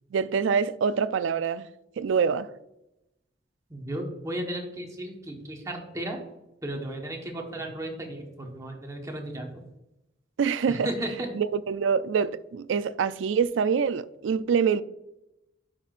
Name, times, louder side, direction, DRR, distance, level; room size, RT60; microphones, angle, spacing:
voice 1, 0.1-1.7 2.0-2.5 10.4-10.9 11.3-14.8, right 6 dB, 85° right, 0.3 m, -25 dB
voice 2, 3.7-6.2 6.6-9.6 10.7-11.3, right 1 dB, 15° right, 1.2 m, -34 dB
9.8 x 5.9 x 2.5 m
head